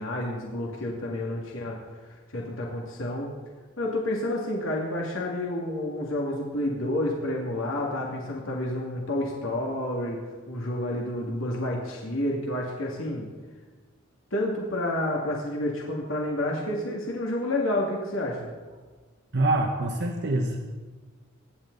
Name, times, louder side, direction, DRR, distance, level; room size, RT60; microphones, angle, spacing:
voice 1, 0.0-3.3 3.8-10.2 10.5-13.3 14.3-18.5, left 1 dB, 75° left, -2 dB, 2.4 m, -29 dB
voice 2, 19.3-20.6, right 2 dB, 60° right, 2 dB, 1.4 m, -25 dB
23.5 x 10.5 x 4.1 m, 1.4 s
head